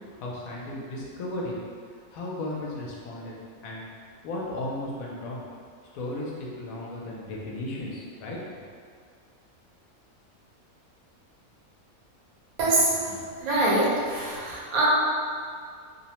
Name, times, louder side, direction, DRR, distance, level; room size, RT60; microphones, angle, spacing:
voice 1, 0.1-1.5 2.1-3.3 3.6-3.8 4.2-5.4 5.9-8.6, left 1 dB, 80° left, -3 dB, 1.0 m, -35 dB
voice 2, 12.6-14.9, right 2 dB, 80° right, -5 dB, 1.1 m, -24 dB
2.7 x 2.1 x 2.8 m, 2.1 s
omnidirectional pair, 1.5 m